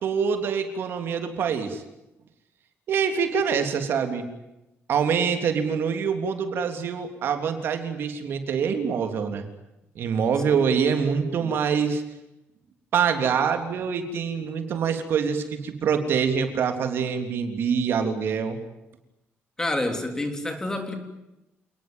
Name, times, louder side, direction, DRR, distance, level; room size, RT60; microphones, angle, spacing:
voice 1, 0.0-1.8 2.9-4.2 4.9-9.5 9.9-12.0 12.9-18.6, right 6 dB, 55° right, 6 dB, 3.4 m, -25 dB
voice 2, 19.6-21.0, left 1 dB, 15° left, 6 dB, 3.5 m, -28 dB
29.0 x 20.0 x 9.4 m, 0.93 s
cardioid pair, 175°, 5 cm